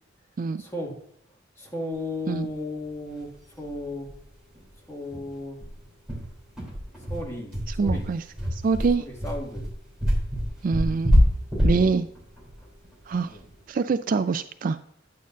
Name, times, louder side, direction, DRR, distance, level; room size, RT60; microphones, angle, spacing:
voice 1, 0.6-1.0 1.6-3.3 3.6-4.1 4.9-5.6 7.1-8.1 9.0-9.7 13.3-13.4, left 1 dB, 15° left, -2 dB, 2.1 m, -34 dB
sound 1, 3.2-3.3 3.6-3.7 4.0-4.2 4.5-4.6 5.1-13.5, equal, 5° right, 3.3 m, -25 dB
voice 2, 7.8-8.2 8.5-9.0 10.6-11.2 11.6-12.1 13.1-13.3 13.7-14.8, right 4 dB, 45° right, 12 dB, 0.3 m, -24 dB
9.4 x 8.5 x 2.6 m, 0.73 s
head